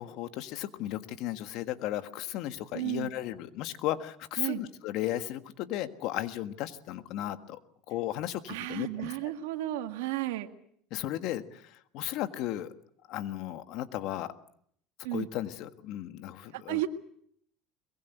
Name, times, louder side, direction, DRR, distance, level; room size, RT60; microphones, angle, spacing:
voice 1, 0.0-7.6 7.9-9.3 10.9-12.7 13.1-14.3 15.1-16.9, left 13 dB, 60° left, 10 dB, 1.6 m, -35 dB
voice 2, 2.7-3.1 4.4-4.6 8.5-10.5 15.0-15.3 16.5-16.9, right 16 dB, 85° right, 6 dB, 1.9 m, -33 dB
22.5 x 22.0 x 8.1 m, 0.68 s
supercardioid pair, 125°, 0 cm